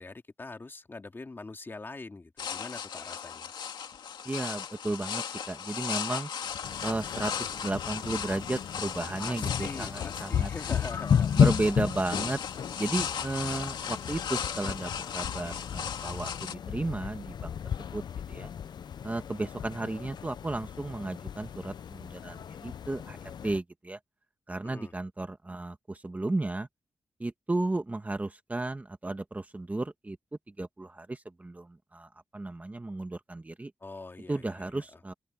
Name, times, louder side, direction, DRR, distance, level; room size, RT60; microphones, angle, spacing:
voice 1, 0.0-3.5 9.2-11.4 11.8-11.9 24.6-24.9 33.8-35.0, left 3 dB, 30° left, 2.8 m, -43 dB
sound 1, 2.4-16.5, left 8 dB, 85° left, 2.5 m, -37 dB
voice 2, 4.2-6.3 6.8-10.5 11.4-12.4 12.8-17.6 17.9-18.0 18.3-18.5 19.0-24.0 24.5-26.7 27.2-30.2 30.6-33.7 34.3-35.1, right 2 dB, 20° right, 1.7 m, -34 dB
sound 2, 6.6-23.6, left 7 dB, 70° left, 0.7 m, -33 dB
cardioid pair, 95°, 8 cm